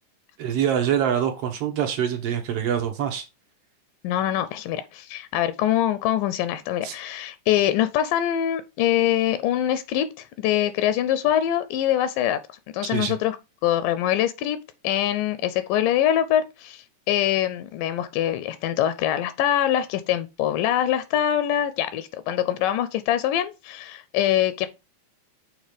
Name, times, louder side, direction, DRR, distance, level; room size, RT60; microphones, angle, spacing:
voice 1, 0.4-3.2 6.8-7.0 12.8-13.2, right 9 dB, 70° right, 1.5 m, -25 dB
voice 2, 4.0-12.4 12.7-13.4 13.6-14.6 14.8-24.7, left 11 dB, 85° left, 2.2 m, -24 dB
6.6 x 3.0 x 5.0 m
omnidirectional pair, 3.7 m